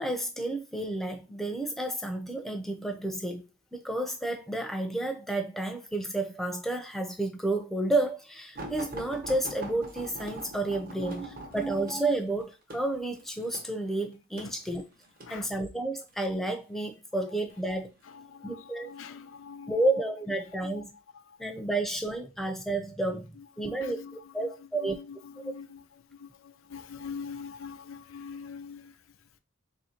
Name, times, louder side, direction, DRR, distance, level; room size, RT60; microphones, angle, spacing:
voice 1, 0.0-3.4 3.7-14.8 15.3-17.9 18.4-18.9 19.7-20.9 21.4-24.0 24.3-25.0, right 2 dB, ahead, 0.5 m, -31 dB
sound 1, 8.5-15.4 16.1-16.6 17.5-18.2 18.9-19.1 19.5-19.6, right 1 dB, 45° right, 0.8 m, -43 dB
voice 2, 10.7-11.7 14.4-14.6 15.2-15.5 17.7-20.0 20.5-20.9 21.3-21.5 23.3-29.4, left 6 dB, 85° left, 0.4 m, -45 dB
3.2 x 2.8 x 4.3 m
head